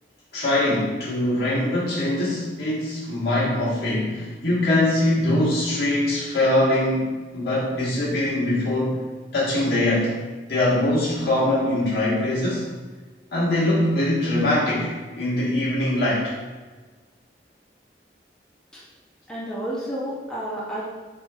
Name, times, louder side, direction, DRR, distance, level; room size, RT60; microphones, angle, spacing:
voice 1, 0.3-9.0 9.3-10.1 10.5-12.6 13.3-16.3, left 1 dB, 65° left, -8 dB, 1.3 m, -22 dB
voice 2, 19.3-20.8, equal, 5° left, -8 dB, 0.4 m, -30 dB
4.2 x 2.7 x 2.3 m, 1.3 s
head